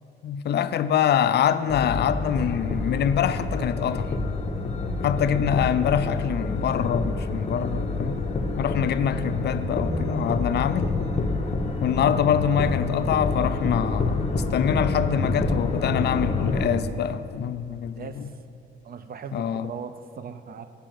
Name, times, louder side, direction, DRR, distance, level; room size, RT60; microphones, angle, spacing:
voice 1, 0.2-4.1 5.0-8.2 8.6-10.9 11.8-18.3 19.3-19.7, left 8 dB, 55° left, 0.4 m, -25 dB
sound 1, 1.7-16.7, left 3 dB, 35° left, 0.8 m, -27 dB
voice 2, 18.8-20.7, right 6 dB, 50° right, 0.6 m, -38 dB
9.8 x 5.2 x 7.7 m
cardioid pair, 90°, 20 cm